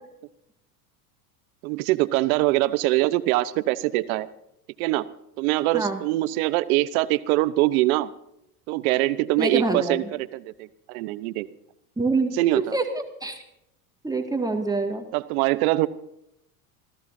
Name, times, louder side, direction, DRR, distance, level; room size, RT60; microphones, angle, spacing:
voice 1, 1.6-4.3 4.8-5.0 5.4-8.1 8.7-11.5 12.4-12.8 15.1-15.9, right 18 dB, 70° right, 15 dB, 1.0 m, -23 dB
voice 2, 9.4-10.1 12.0-12.9 13.2-13.4 14.0-15.1, right 3 dB, 10° right, 3 dB, 2.0 m, -25 dB
27.5 x 14.5 x 2.7 m, 0.80 s
hypercardioid pair, 95°, 45 cm